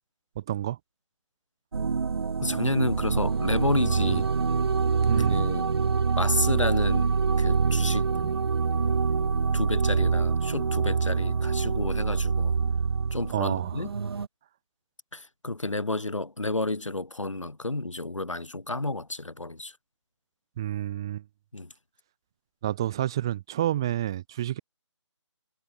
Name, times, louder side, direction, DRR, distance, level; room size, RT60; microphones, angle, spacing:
voice 1, 0.4-0.8 4.1-4.2 5.1-5.4 8.2-8.3 13.3-13.8 20.6-21.2 22.6-24.6, right 12 dB, 10° right, 0.4 m, -29 dB
sound 1, 1.7-14.3, right 5 dB, 55° right, 0.7 m, -25 dB
voice 2, 2.4-4.3 5.2-5.7 6.2-7.1 7.4-8.1 9.5-12.5 13.1-13.9 15.1-19.7 21.5-21.7, left 2 dB, 90° left, 1.8 m, -30 dB
figure-of-eight pair, 155°, 16 cm